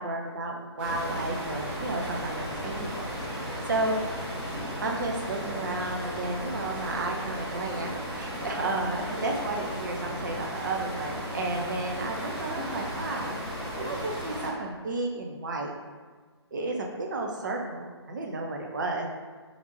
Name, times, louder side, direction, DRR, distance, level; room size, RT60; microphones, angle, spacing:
voice 1, 0.0-4.0 4.8-13.4 13.8-15.7 16.5-19.2, right 2 dB, 45° right, 1 dB, 0.5 m, -32 dB
sound 1, 0.8-14.5, equal, 10° right, 0.7 m, -35 dB
3.9 x 3.4 x 3.0 m, 1.5 s
figure-of-eight pair, 140°, 15 cm